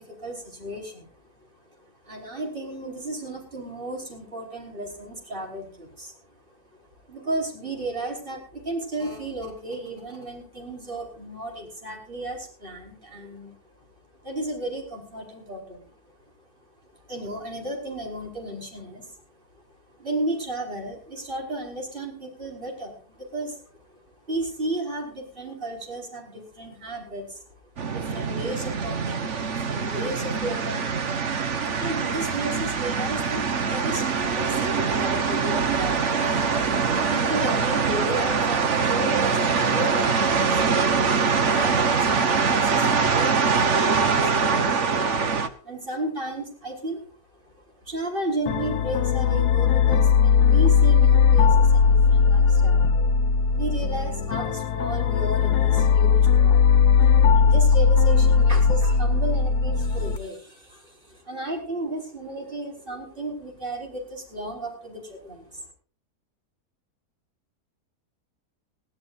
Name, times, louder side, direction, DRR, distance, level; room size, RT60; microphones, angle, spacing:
voice 1, 0.0-1.5 1.8-6.8 7.1-13.6 14.2-16.0 16.9-19.2 19.5-19.6 19.9-24.0 24.3-27.6 27.9-30.9 31.2-45.0 45.4-47.0 47.6-52.9 53.5-65.7, right 1 dB, 35° right, 0 dB, 5.5 m, -34 dB
sound 1, 27.8-45.5, right 5 dB, 50° right, 1.4 m, -23 dB
sound 2, 48.5-60.2, left 6 dB, 85° left, 1.5 m, -18 dB
21.5 x 16.0 x 2.6 m, 0.40 s
omnidirectional pair, 1.7 m